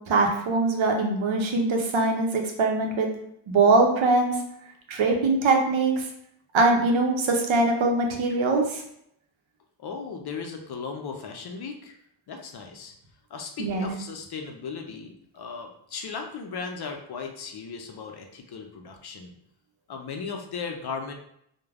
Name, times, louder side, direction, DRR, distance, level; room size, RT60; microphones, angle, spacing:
voice 1, 0.1-3.1 3.5-4.3 4.9-6.1 6.5-8.8 13.6-13.9, right 3 dB, 75° right, 2 dB, 0.6 m, -22 dB
voice 2, 9.8-11.9 12.3-12.9 13.3-19.3 19.9-21.1, left 5 dB, 55° left, 3 dB, 0.5 m, -36 dB
3.2 x 2.1 x 2.4 m, 0.73 s
wide cardioid pair, 110°, 47 cm